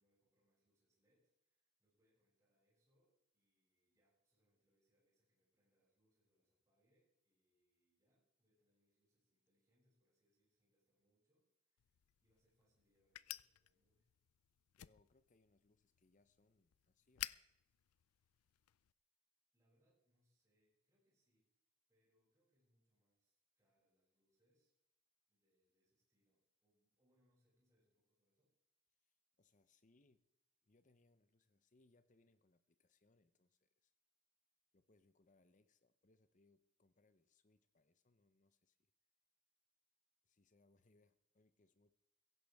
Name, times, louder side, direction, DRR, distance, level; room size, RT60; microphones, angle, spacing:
voice 1, 0.0-14.1 19.5-24.7 25.3-28.5, equal, 15° right, -6 dB, 6.7 m, -84 dB
sound 1, 11.8-18.9, left 15 dB, 85° left, 0.4 m, -54 dB
voice 2, 14.8-17.4 29.0-30.2 30.6-33.9 34.7-38.9 40.2-41.9, left 2 dB, 35° left, 12 dB, 0.7 m, -75 dB
16.5 x 15.5 x 3.5 m, 0.89 s
head